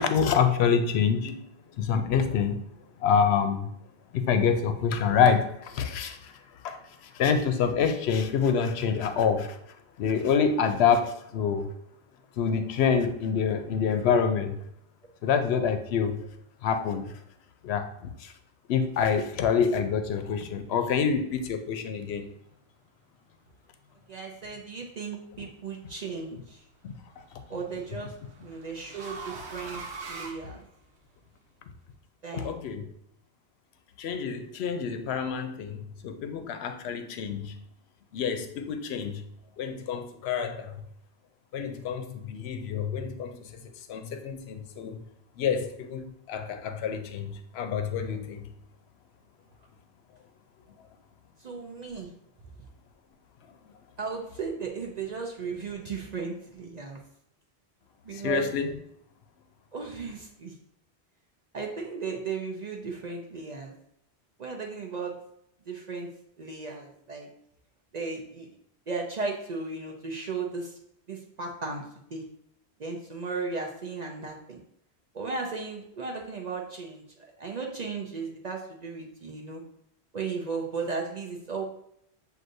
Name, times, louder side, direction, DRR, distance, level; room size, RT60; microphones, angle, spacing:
voice 1, 0.0-1.4 1.8-2.7 3.0-3.7 4.1-6.3 6.6-9.6 10.0-11.7 12.4-14.6 15.2-16.2 16.6-17.1 17.6-18.3 18.7-22.3 26.8-26.9 32.3-32.9 34.0-37.5 38.1-39.2 39.6-40.8 41.5-45.0 45.4-48.4 58.1-58.7, left 6 dB, 75° left, 8 dB, 0.8 m, -27 dB
voice 2, 24.1-26.6 27.5-28.1 28.4-29.8 30.1-30.6 32.2-32.6 51.4-52.1 54.0-57.0 58.0-58.5 59.7-60.5 61.5-63.7 64.4-65.1 65.7-66.1 66.4-67.3 67.9-68.6 68.9-70.8 71.1-71.9 72.1-72.2 72.8-74.6 75.1-77.0 77.4-79.6 80.1-81.6, right 4 dB, 50° right, 0 dB, 0.6 m, -35 dB
sound 1, 25.3-25.8 27.2-31.2, right 4 dB, 85° right, 1.0 m, -42 dB
7.6 x 2.6 x 2.6 m, 0.73 s
omnidirectional pair, 1.1 m